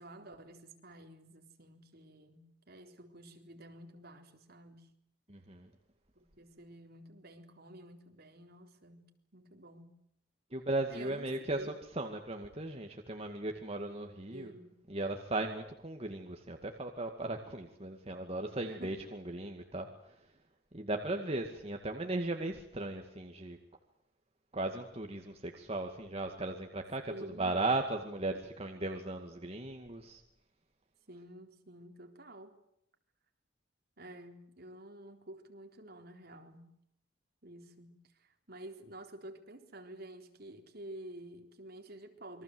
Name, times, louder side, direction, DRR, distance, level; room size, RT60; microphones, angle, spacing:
voice 1, 0.0-4.9 6.2-10.0 10.9-11.8 14.3-14.7 18.6-19.0 27.1-27.6 31.1-32.6 34.0-36.8 37.4-42.4, right 1 dB, 55° right, 5 dB, 3.8 m, -50 dB
voice 2, 5.3-5.7 10.5-11.6 12.0-14.5 14.9-20.2 20.7-23.6 24.5-27.1 27.4-30.2, right 2 dB, 30° right, 4 dB, 2.3 m, -37 dB
28.5 x 23.5 x 8.0 m, 0.73 s
head